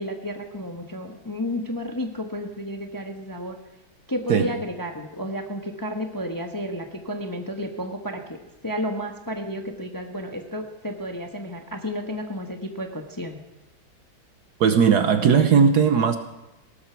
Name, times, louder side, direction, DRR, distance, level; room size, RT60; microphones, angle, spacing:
voice 1, 0.0-3.6 4.1-8.4 8.6-13.4, equal, 15° left, 3 dB, 0.9 m, -32 dB
voice 2, 14.6-16.2, right 6 dB, 60° right, 8 dB, 1.3 m, -18 dB
18.0 x 13.0 x 4.6 m, 1.0 s
omnidirectional pair, 2.1 m